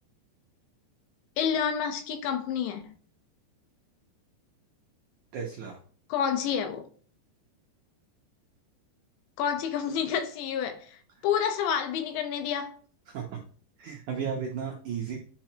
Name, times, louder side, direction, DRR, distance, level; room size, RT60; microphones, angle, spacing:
voice 1, 1.4-2.9 6.1-6.9 9.4-12.8, left 8 dB, 85° left, 3.4 m, -29 dB
voice 2, 5.3-5.8 11.1-11.2 13.1-13.4 13.8-15.2, right 7 dB, 85° right, 1.7 m, -34 dB
9.8 x 5.8 x 3.0 m
omnidirectional pair, 5.1 m